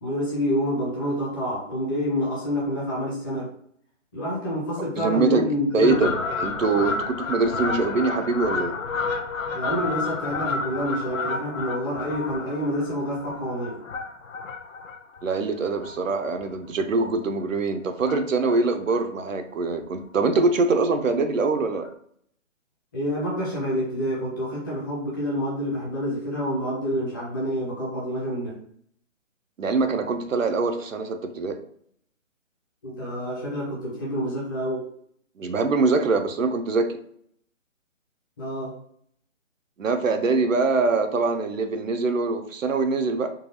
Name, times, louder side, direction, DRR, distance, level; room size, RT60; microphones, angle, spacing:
voice 1, 0.0-3.5 4.1-6.2 9.5-13.8 22.9-28.6 32.8-34.9 38.4-38.8, equal, 15° left, -5 dB, 0.7 m, -28 dB
voice 2, 5.0-5.4 5.7-8.8 15.2-21.9 29.6-31.6 35.4-36.9 39.8-43.3, right 3 dB, 75° right, 7 dB, 0.6 m, -23 dB
Fowl, 5.8-16.6 17.1-17.3 18.0-18.6 18.9-19.0 19.2-19.3 19.6-19.7 20.0-20.2 21.2-21.3 21.8-21.9, left 4 dB, 80° left, 0.6 m, -31 dB
3.8 x 2.3 x 2.7 m, 0.64 s
figure-of-eight pair, 145°, 39 cm